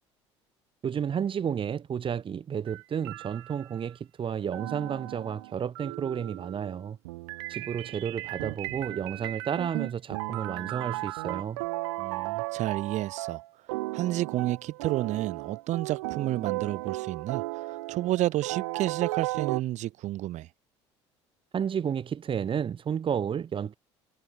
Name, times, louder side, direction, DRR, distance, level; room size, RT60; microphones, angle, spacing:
voice 1, 0.8-7.0 7.5-11.6 21.5-23.8, right 8 dB, 35° right, 2.6 m, -31 dB
sound 1, 2.7-3.9 4.5-19.6, right 22 dB, 70° right, 6.8 m, -35 dB
voice 2, 12.0-13.4 13.9-20.5, right 15 dB, 55° right, 5.8 m, -30 dB
figure-of-eight pair, 65°, 15 cm